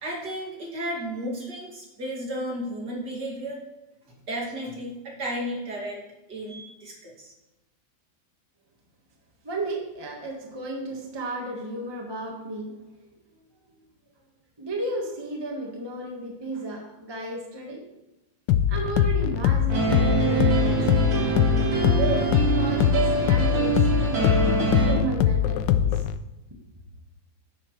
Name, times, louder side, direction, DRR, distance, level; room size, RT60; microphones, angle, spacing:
voice 1, 0.0-3.6 4.3-6.0 6.3-7.3, equal, 60° right, -2 dB, 2.9 m, -33 dB
voice 2, 9.4-12.8 14.6-17.8 18.7-21.2 21.8-26.0, right 2 dB, 15° right, 0 dB, 1.3 m, -33 dB
sound 1, 18.5-26.2, left 10 dB, 75° left, 1.2 m, -22 dB
sound 2, 19.7-24.9, right 5 dB, 85° right, 2.9 m, -25 dB
10.0 x 9.8 x 3.2 m, 1.0 s
omnidirectional pair, 2.1 m